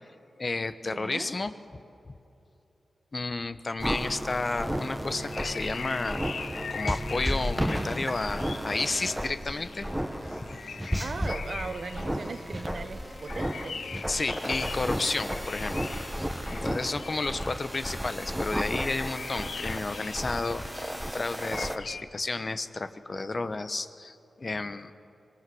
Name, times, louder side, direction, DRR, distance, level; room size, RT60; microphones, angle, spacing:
voice 1, 0.4-1.5 3.1-6.2 6.7-9.9 14.1-15.8 16.2-24.9, left 3 dB, 45° left, 11 dB, 1.0 m, -32 dB
voice 2, 0.9-1.3 11.0-13.8, right 4 dB, 60° right, 10 dB, 1.0 m, -38 dB
sound 1, 3.8-21.8, equal, 5° right, 1.3 m, -33 dB
sound 2, 5.2-22.0, left 6 dB, 80° left, 0.7 m, -42 dB
25.0 x 18.5 x 7.8 m, 2.8 s
cardioid pair, 65°, 0 cm